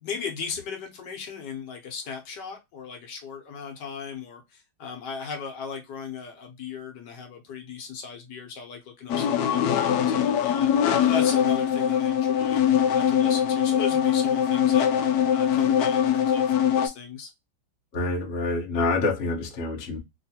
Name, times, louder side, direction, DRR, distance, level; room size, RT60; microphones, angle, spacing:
voice 1, 0.0-12.6 12.9-14.9 15.3-17.3, left 6 dB, 65° left, 1.3 m, -37 dB
sound 1, 9.1-16.9, left 9 dB, 85° left, 0.8 m, -22 dB
voice 2, 17.9-20.0, left 3 dB, 50° left, 0.8 m, -26 dB
3.2 x 3.0 x 2.7 m
omnidirectional pair, 2.2 m